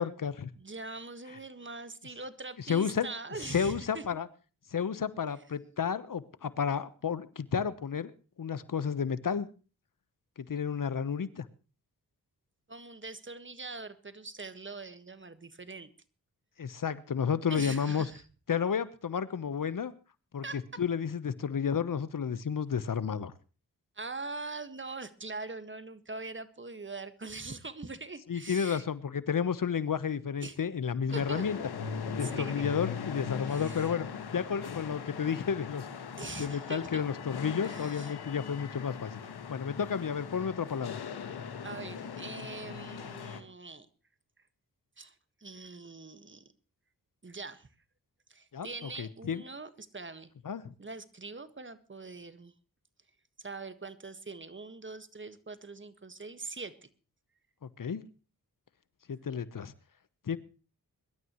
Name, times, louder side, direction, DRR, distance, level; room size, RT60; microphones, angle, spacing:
voice 1, 0.0-0.5 2.7-3.1 3.5-4.3 4.7-8.1 8.4-9.5 10.4-11.5 16.6-18.1 18.5-19.9 20.3-20.4 20.8-23.3 28.3-31.6 32.2-34.1 34.3-35.9 36.4-39.1 39.5-41.0 48.5-48.7 49.0-49.4 50.4-50.6 57.8-58.0 59.1-59.7 60.3-60.4, left 7 dB, 60° left, 15 dB, 1.1 m, -31 dB
voice 2, 0.5-4.1 12.7-15.9 17.5-18.2 20.4-20.8 23.9-28.8 30.4-30.6 31.1-31.4 32.2-32.7 33.5-34.3 36.1-37.1 37.6-38.2 41.6-43.9 45.0-46.5 47.2-47.7 48.3-50.3 50.8-52.5 53.4-56.9, right 3 dB, 30° right, 12 dB, 1.6 m, -43 dB
sound 1, 31.1-43.4, left 6 dB, 85° left, 1.8 m, -40 dB
23.0 x 12.5 x 3.1 m, 0.35 s
cardioid pair, 60°, 37 cm